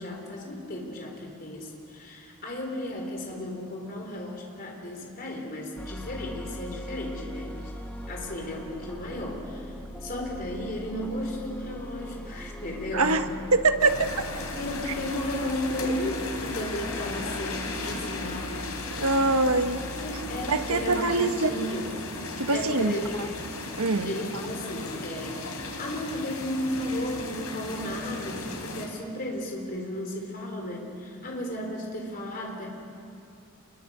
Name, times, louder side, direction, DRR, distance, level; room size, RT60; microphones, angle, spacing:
voice 1, 0.0-7.7 8.1-13.2 14.5-18.6 19.9-21.9 22.5-23.2 24.1-32.7, left 1 dB, 40° left, 0 dB, 3.8 m, -34 dB
sound 1, 5.8-21.0, equal, 5° left, 1.4 m, -41 dB
voice 2, 13.5-14.1 18.9-19.8 20.5-21.6 22.4-23.0 23.8-24.1, right 3 dB, 80° right, 8 dB, 1.3 m, -23 dB
sound 2, 13.8-28.9, left 2 dB, 85° left, 3.5 m, -36 dB
27.5 x 22.5 x 6.8 m, 2.6 s
head